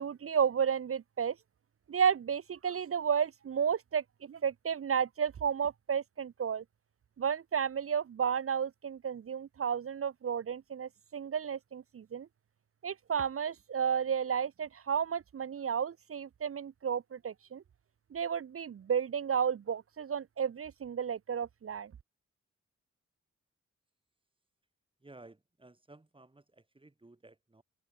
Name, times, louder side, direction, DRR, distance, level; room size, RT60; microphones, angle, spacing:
voice 1, 0.0-1.4 1.9-6.6 7.2-12.3 12.8-17.6 18.1-21.9, right 7 dB, 50° right, 0.6 m, -32 dB
voice 2, 25.0-27.6, right 2 dB, 15° right, 3.2 m, -56 dB
open air
wide cardioid pair, 125°, 30 cm